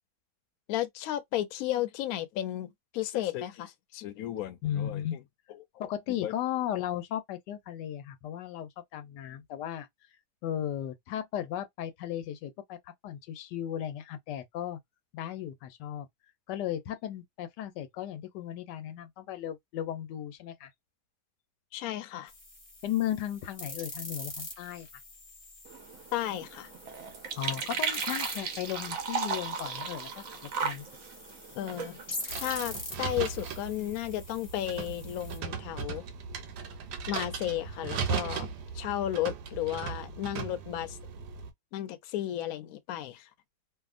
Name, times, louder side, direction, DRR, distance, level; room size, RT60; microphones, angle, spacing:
voice 1, 0.7-2.7 2.9-5.2 6.2-6.3 21.7-22.3 26.1-26.7 31.5-32.0 32.4-36.0 37.1-38.5 38.7-41.0 41.7-43.3, left 13 dB, 70° left, 0.9 m, -33 dB
voice 2, 4.6-5.2 5.8-9.9 10.4-12.8 13.0-14.8 15.1-16.1 16.5-20.7 22.8-24.9 27.4-30.2 30.6-30.9, left 11 dB, 90° left, 1.2 m, -35 dB
sound 1, 22.3-35.4, left 2 dB, 20° left, 0.7 m, -44 dB
sound 2, 25.6-32.8, right 5 dB, 60° right, 0.9 m, -36 dB
sound 3, 32.3-41.5, right 6 dB, 80° right, 1.2 m, -37 dB
2.8 x 2.5 x 2.4 m
omnidirectional pair, 1.8 m